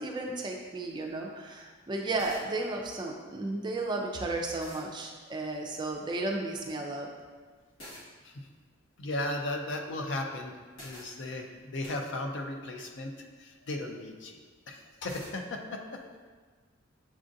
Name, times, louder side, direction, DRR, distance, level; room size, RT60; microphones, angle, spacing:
voice 1, 0.0-7.1, right 2 dB, 20° right, 1 dB, 0.4 m, -34 dB
sound 1, 2.2-2.5 4.0-4.1 4.6-4.9 7.8-8.1 10.7-11.1 11.8-12.0 15.1-15.4, equal, 90° left, 1.3 m, -47 dB
voice 2, 9.0-10.5 10.8-13.1 13.4-14.4 14.7-16.3, left 1 dB, 60° left, 3 dB, 0.5 m, -36 dB
7.4 x 2.5 x 2.6 m, 1.4 s
head